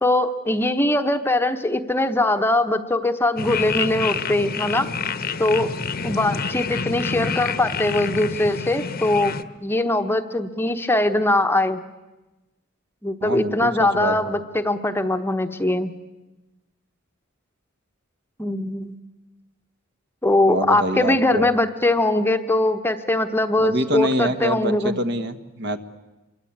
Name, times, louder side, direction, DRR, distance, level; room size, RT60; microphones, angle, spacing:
voice 1, 0.0-4.9 5.4-5.7 6.0-9.3 9.6-11.8 13.0-15.9 18.4-19.0 20.2-25.0, left 2 dB, 10° left, 8 dB, 0.9 m, -21 dB
sound 1, 3.4-9.4, left 5 dB, 45° left, 1.0 m, -28 dB
voice 2, 13.2-14.2 20.5-21.4 23.6-25.8, right 1 dB, 55° right, 9 dB, 1.5 m, -25 dB
26.5 x 23.5 x 8.7 m, 1.1 s
head